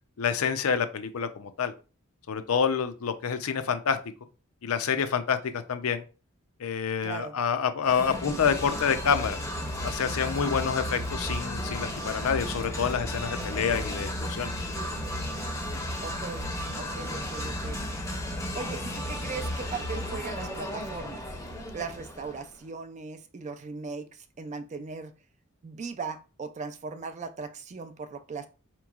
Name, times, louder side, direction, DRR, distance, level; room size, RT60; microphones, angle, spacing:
voice 1, 0.2-1.7 2.3-4.0 4.6-6.0 6.6-9.4 9.8-14.5, left 6 dB, 75° left, 0.5 m, -27 dB
voice 2, 7.0-7.4 16.0-16.5 16.8-17.8 18.6-21.2 21.7-24.1 24.4-25.1 25.6-28.5, right 4 dB, 35° right, 0.3 m, -38 dB
sound 1, 7.8-22.5, left 1 dB, 15° left, 0.6 m, -34 dB
4.5 x 3.0 x 2.4 m
head